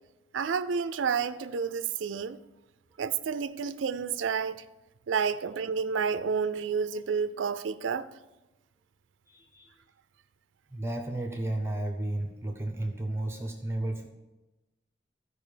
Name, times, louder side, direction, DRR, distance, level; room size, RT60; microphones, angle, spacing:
voice 1, 0.3-2.4 3.0-4.6 5.1-8.1, right 6 dB, 85° right, 0.4 m, -30 dB
voice 2, 9.3-9.7 10.7-14.1, right 1 dB, 15° right, 0.7 m, -33 dB
13.5 x 4.9 x 5.0 m
head